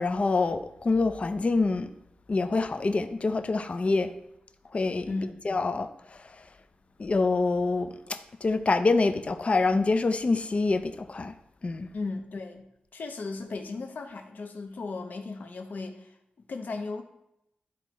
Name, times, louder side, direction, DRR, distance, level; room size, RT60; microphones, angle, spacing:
voice 1, 0.0-1.9 2.3-4.1 4.7-5.1 5.4-6.2 7.0-11.3 11.6-11.9, left 3 dB, 40° left, 0.5 m, -26 dB
voice 2, 5.0-5.5 11.9-12.7 12.9-16.2 16.5-17.0, left 3 dB, 70° left, 0.8 m, -36 dB
12.0 x 4.5 x 3.1 m
wide cardioid pair, 95°, 3 cm